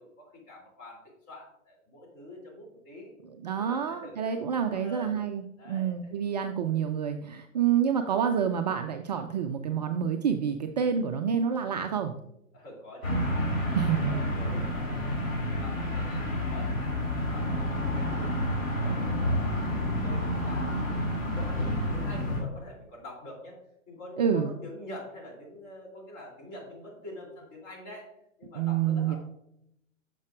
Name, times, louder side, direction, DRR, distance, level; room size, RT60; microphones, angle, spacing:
voice 1, 0.0-3.1 3.5-5.2 5.6-5.9 12.5-18.3 18.7-23.6 23.9-28.1 28.4-29.2, left 1 dB, 30° left, -1 dB, 3.1 m, -46 dB
voice 2, 3.2-12.1 13.7-14.3 24.2-24.5 28.6-29.2, right 8 dB, 35° right, 6 dB, 0.4 m, -28 dB
sound 1, 13.0-22.4, left 1 dB, 80° left, 2.7 m, -29 dB
9.3 x 6.7 x 2.5 m, 0.79 s
figure-of-eight pair, 110°, 39 cm